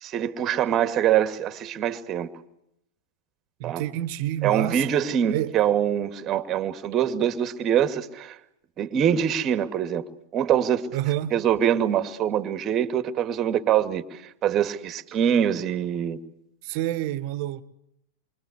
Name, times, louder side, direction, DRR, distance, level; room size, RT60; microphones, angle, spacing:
voice 1, 0.0-2.3 3.6-3.8 4.4-8.4 8.8-10.1 10.3-10.9 11.3-16.2, right 9 dB, 30° right, 2.2 m, -24 dB
voice 2, 3.6-4.9 5.3-5.6 10.9-11.4 16.6-17.6, right 13 dB, 45° right, 1.7 m, -28 dB
28.5 x 24.5 x 8.3 m
figure-of-eight pair, 90°, 0 cm